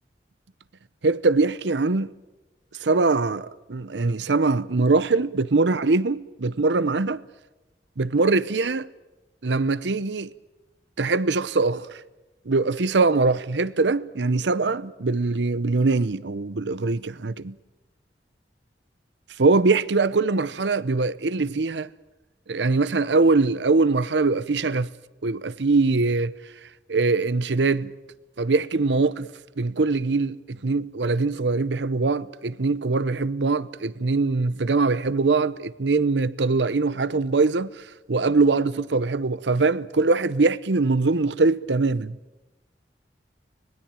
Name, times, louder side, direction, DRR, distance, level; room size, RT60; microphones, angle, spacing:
voice 1, 1.0-2.1 2.8-7.2 8.0-8.9 9.4-10.3 11.0-12.0 12.5-17.6 19.4-21.9 22.5-24.9 25.2-26.3 26.9-27.9 28.4-29.3 29.6-37.8 38.1-42.2, right 3 dB, 85° right, 0.8 m, -22 dB
25.0 x 20.0 x 9.0 m
head